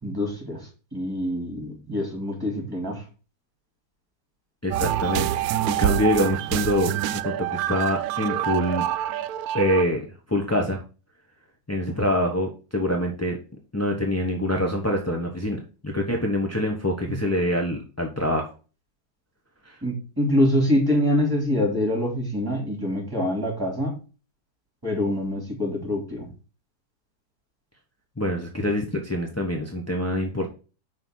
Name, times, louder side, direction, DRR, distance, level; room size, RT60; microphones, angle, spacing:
voice 1, 0.0-3.0 19.8-23.9 24.8-26.3, left 1 dB, 10° right, 0 dB, 3.5 m, -25 dB
voice 2, 4.6-6.9 7.2-8.8 9.5-10.8 11.7-13.4 13.7-18.5 19.6-19.8 28.2-30.5, left 1 dB, 15° left, 0 dB, 0.6 m, -25 dB
sound 1, 4.7-9.8, right 12 dB, 70° right, 0.9 m, -26 dB
5.6 x 4.9 x 6.3 m, 0.35 s
omnidirectional pair, 1.9 m